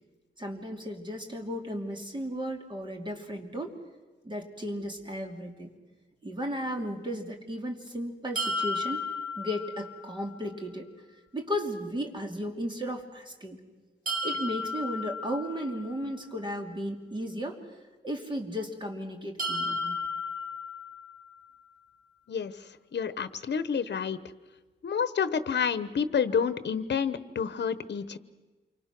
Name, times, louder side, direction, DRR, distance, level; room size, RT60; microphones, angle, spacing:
voice 1, 0.4-3.7 4.2-5.7 6.2-9.0 9.4-10.9 11.3-13.6 14.2-17.6 18.0-20.0, equal, 25° right, 3 dB, 2.7 m, -35 dB
sound 1, 8.4-10.3 14.1-16.1 19.4-21.4, left 2 dB, 45° right, 4.8 m, -34 dB
voice 2, 22.9-24.2 24.8-28.2, left 6 dB, 65° left, 14 dB, 1.0 m, -29 dB
28.0 x 24.5 x 6.1 m, 1.3 s
wide cardioid pair, 145°, 19 cm